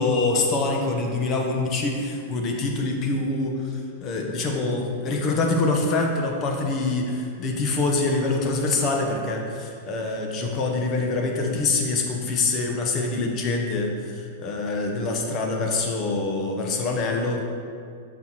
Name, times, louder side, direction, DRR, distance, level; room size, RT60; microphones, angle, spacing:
voice 1, 0.0-17.5, left 3 dB, 35° left, 1 dB, 1.0 m, -25 dB
7.0 x 6.1 x 3.1 m, 2.3 s
hypercardioid pair, 135°, 0 cm